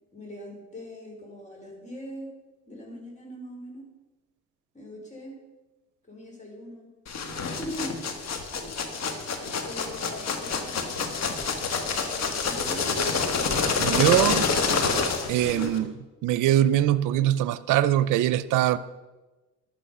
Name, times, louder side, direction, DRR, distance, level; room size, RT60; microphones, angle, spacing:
voice 1, 0.1-2.3 2.7-3.9 4.7-5.4 6.0-6.9 7.5-8.0 9.4-10.9 12.4-12.9, equal, 25° left, 4.5 m, -41 dB
sound 1, 7.1-15.8, left 5 dB, 60° left, 1.5 m, -27 dB
voice 2, 13.8-14.5 15.3-18.8, right 12 dB, 90° right, 0.5 m, -22 dB
11.5 x 8.9 x 5.5 m
cardioid pair, 90°, 30 cm